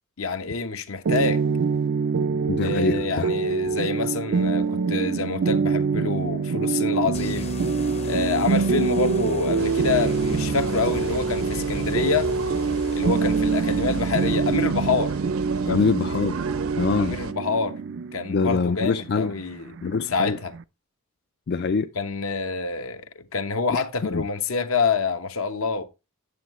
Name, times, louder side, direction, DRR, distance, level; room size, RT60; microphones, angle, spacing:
voice 1, 0.2-1.4 2.6-7.5 8.0-12.3 12.9-15.2 15.7-15.8 17.0-17.7 18.1-19.7 20.1-20.5 22.0-25.8, left 4 dB, 70° left, 1.0 m, -27 dB
sound 1, 1.0-20.6, right 5 dB, 55° right, 0.4 m, -25 dB
voice 2, 2.5-3.3 15.7-16.4 16.8-17.2 18.3-19.4 19.8-20.4 21.5-21.9 23.7-23.8 24.1-24.2, left 4 dB, 50° left, 0.4 m, -24 dB
sound 2, 7.1-14.8, left 2 dB, 30° left, 0.7 m, -36 dB
sound 3, 9.6-17.3, right 3 dB, 75° right, 0.8 m, -35 dB
9.6 x 7.2 x 3.1 m
head